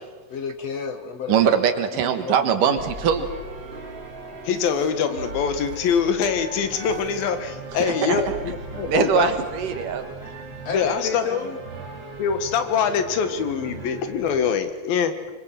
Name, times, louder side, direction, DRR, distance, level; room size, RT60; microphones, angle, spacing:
voice 1, 0.3-1.4 2.0-2.8 10.7-11.6, left 6 dB, 55° left, 8 dB, 2.0 m, -31 dB
voice 2, 1.3-3.3 7.8-8.4 8.9-10.1, right 8 dB, 65° right, 9 dB, 3.1 m, -22 dB
sound 1, 2.8-14.5, right 3 dB, 30° right, 3.9 m, -38 dB
voice 3, 4.5-9.3 10.7-11.3 12.2-15.1, left 7 dB, 80° left, 10 dB, 3.5 m, -24 dB
25.0 x 24.0 x 7.7 m, 1.2 s
omnidirectional pair, 4.1 m